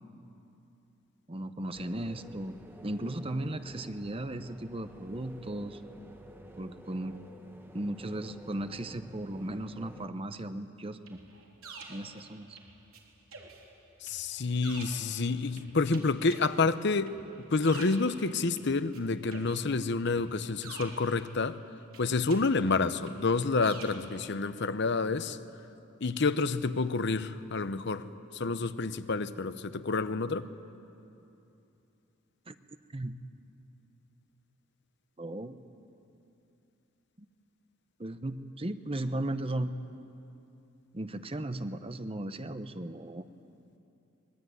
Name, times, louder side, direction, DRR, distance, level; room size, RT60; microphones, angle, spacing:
voice 1, 1.3-2.5 2.8-5.8 6.6-7.2 7.7-11.2 11.9-12.6 32.5-32.6 32.9-33.1 35.2-35.6 38.0-39.7 40.9-43.3, right 1 dB, 25° right, 0.9 m, -36 dB
sound 1, 1.7-10.1, right 1 dB, 10° right, 1.3 m, -51 dB
sound 2, 11.1-13.0 13.3-19.0 19.3-21.6 21.9-24.2, right 4 dB, 90° right, 3.6 m, -49 dB
voice 2, 14.0-17.1 17.5-21.6 22.0-25.4 26.0-28.1 28.3-30.5, left 3 dB, 55° left, 0.8 m, -29 dB
25.0 x 21.0 x 9.5 m
head